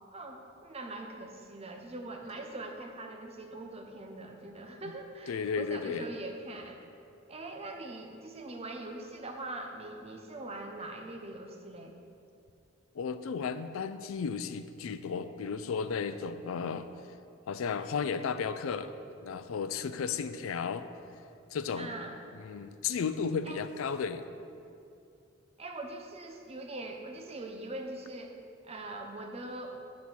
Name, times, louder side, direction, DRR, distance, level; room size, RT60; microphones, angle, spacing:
voice 1, 0.0-6.8 7.3-11.9 21.8-22.2 23.4-23.6 25.6-28.4 28.6-29.8, right 2 dB, 30° right, 3 dB, 0.7 m, -42 dB
voice 2, 5.3-6.1 12.9-16.9 17.5-19.0 19.2-20.8 21.5-22.0 22.4-24.2, left 6 dB, 85° left, 11 dB, 0.4 m, -34 dB
8.4 x 4.2 x 6.1 m, 2.5 s
head